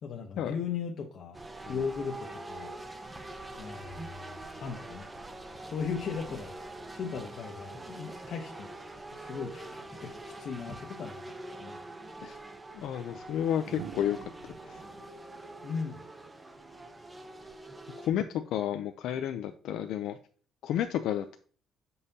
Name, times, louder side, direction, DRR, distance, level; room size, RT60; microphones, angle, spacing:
voice 1, 0.0-1.4 1.7-2.7 3.6-5.1 5.6-6.6 6.9-8.7 9.1-11.3 11.6-11.8 15.6-16.1, left 6 dB, 50° left, 1 dB, 0.9 m, -37 dB
sound 1, 1.3-18.1, right 2 dB, 15° right, 0.6 m, -44 dB
sound 2, 12.2-12.3 13.6-16.7 18.2-18.5, right 10 dB, 85° right, 0.6 m, -48 dB
voice 2, 12.7-14.2 14.7-14.8 18.0-20.2 20.6-21.4, left 10 dB, 75° left, 7 dB, 0.4 m, -31 dB
8.0 x 5.4 x 2.8 m, 0.43 s
cardioid pair, 155°, 0 cm